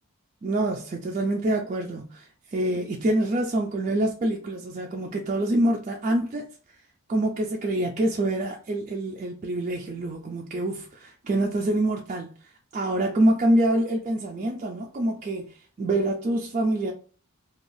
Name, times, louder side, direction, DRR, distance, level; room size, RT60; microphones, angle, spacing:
voice 1, 0.4-6.5 7.1-16.9, right 1 dB, 35° right, 0.3 m, -26 dB
2.6 x 2.3 x 3.1 m
head